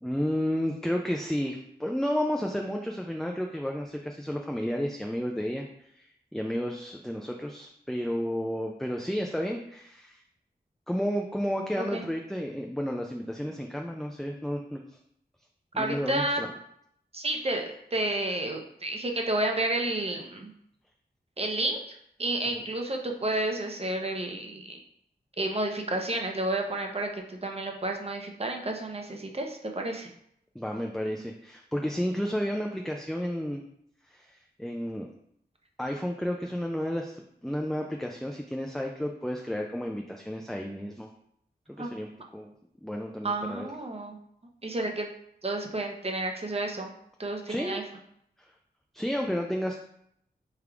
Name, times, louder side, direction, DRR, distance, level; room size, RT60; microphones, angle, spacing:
voice 1, 0.0-5.7 6.0-6.1 6.3-10.2 10.9-14.8 15.7-16.5 22.5-22.6 30.6-33.6 34.1-35.1 35.8-37.2 37.4-41.1 41.7-42.5 42.8-43.7 47.5-47.8 48.9-49.8, equal, ahead, 1 dB, 0.4 m, -32 dB
voice 2, 15.7-16.4 17.1-20.5 21.4-24.8 25.4-30.1 41.8-41.9 43.2-44.2 44.6-45.1 45.4-46.9 47.2-47.8, right 2 dB, 35° right, 2 dB, 0.7 m, -31 dB
3.4 x 2.4 x 4.5 m, 0.72 s
wide cardioid pair, 60°, 17 cm